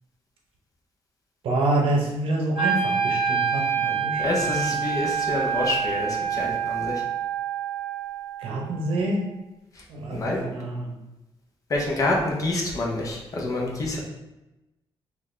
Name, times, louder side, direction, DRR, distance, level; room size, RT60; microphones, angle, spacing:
voice 1, 1.4-4.8 8.4-9.2 9.9-10.9, right 2 dB, 70° right, -1 dB, 0.7 m, -27 dB
Wind instrument woodwind instrument, 2.5-8.6, right 7 dB, 5° right, 1.2 m, -26 dB
voice 2, 4.2-7.0 10.1-10.4 11.7-14.0, left 2 dB, 35° left, -1 dB, 0.7 m, -27 dB
4.0 x 2.4 x 3.2 m, 0.98 s
cardioid pair, 155°, 10 cm